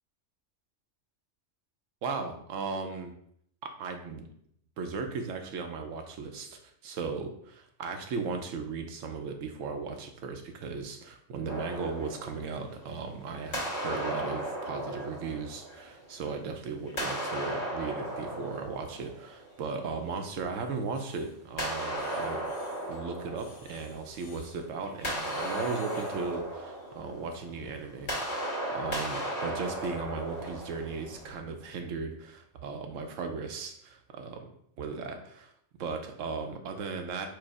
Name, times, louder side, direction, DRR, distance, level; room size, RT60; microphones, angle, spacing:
voice 1, 2.0-3.1 3.6-4.3 4.8-22.4 22.9-34.5 34.8-35.5 35.8-37.3, right 4 dB, 90° right, 5 dB, 1.0 m, -37 dB
sound 1, 11.5-13.1 13.5-16.3 16.9-19.8 21.6-24.3 24.7-31.4, right 1 dB, 65° left, 1.6 m, -36 dB
sound 2, 20.9-21.4 21.9-23.0 23.3-24.6 25.1-26.3, left 4 dB, 85° left, 1.1 m, -54 dB
4.8 x 2.0 x 4.6 m, 0.71 s
omnidirectional pair, 1.3 m